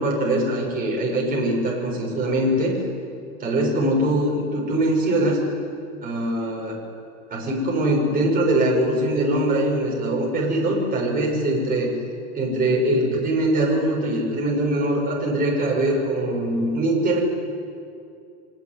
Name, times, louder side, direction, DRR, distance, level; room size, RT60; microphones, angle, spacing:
voice 1, 0.0-2.7 3.4-5.4 6.0-6.8 7.3-11.9 12.3-17.2, right 1 dB, 20° right, -2 dB, 7.0 m, -22 dB
25.5 x 19.5 x 9.7 m, 2.4 s
supercardioid pair, 150°, 46 cm